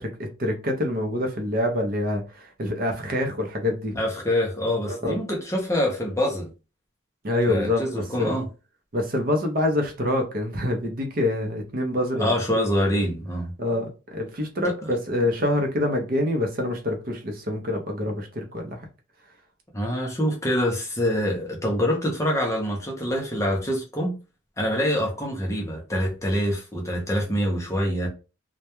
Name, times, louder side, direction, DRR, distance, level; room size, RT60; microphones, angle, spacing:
voice 1, 0.0-3.9 4.9-5.2 7.2-8.4 8.9-12.6 13.6-18.8, left 1 dB, 45° right, 3 dB, 0.6 m, -26 dB
voice 2, 4.0-6.5 7.5-8.4 12.2-13.5 19.7-24.1 24.6-28.1, equal, 15° left, -1 dB, 0.5 m, -25 dB
2.2 x 2.1 x 2.9 m, 0.31 s
head